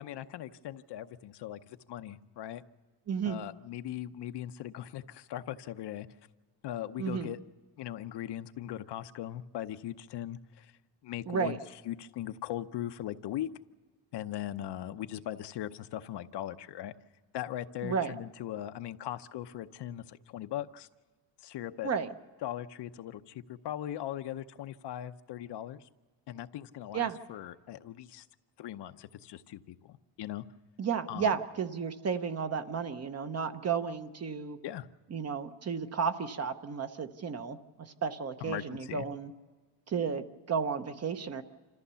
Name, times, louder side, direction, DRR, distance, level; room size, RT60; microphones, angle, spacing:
voice 1, 0.0-2.6 3.3-6.1 6.6-7.4 7.8-10.7 11.0-13.5 14.1-16.9 17.3-20.9 21.4-21.9 22.4-25.9 26.3-28.2 28.6-30.4 31.1-31.3 34.6-34.9 38.4-39.1, left 12 dB, 65° left, 10 dB, 0.8 m, -39 dB
voice 2, 3.1-3.4 7.0-7.3 11.3-11.6 17.8-18.1 21.8-22.1 26.9-27.2 30.8-34.6 35.1-37.6 38.0-39.3 39.9-41.4, right 6 dB, 35° right, 9 dB, 0.9 m, -33 dB
27.0 x 14.0 x 6.9 m, 1.3 s
cardioid pair, 135°, 45 cm